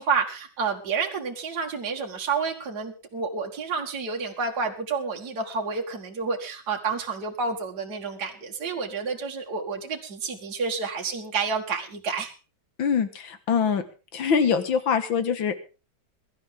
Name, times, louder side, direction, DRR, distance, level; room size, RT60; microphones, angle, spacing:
voice 1, 0.0-12.3, right 5 dB, 55° right, 0 dB, 2.2 m, -29 dB
voice 2, 12.8-13.8 14.1-15.6, left 6 dB, 75° left, 10 dB, 2.3 m, -24 dB
22.0 x 12.0 x 3.7 m, 0.33 s
omnidirectional pair, 2.2 m